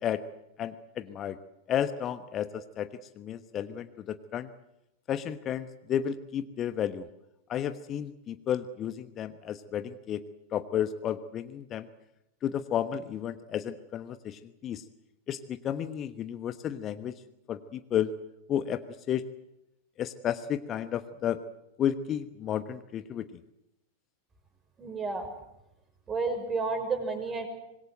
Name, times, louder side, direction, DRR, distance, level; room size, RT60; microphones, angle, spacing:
voice 1, 0.6-1.4 1.7-2.9 3.2-4.5 5.1-7.1 7.5-10.2 10.5-11.9 12.4-14.8 15.3-17.2 17.5-18.1 18.5-18.8 19.1-19.2 20.0-21.4 21.8-23.3, left 9 dB, 30° left, 11 dB, 1.1 m, -32 dB
voice 2, 24.8-25.3 26.1-27.5, right 4 dB, 20° right, 6 dB, 6.1 m, -31 dB
25.0 x 21.5 x 7.8 m, 0.86 s
figure-of-eight pair, 90°, 0 cm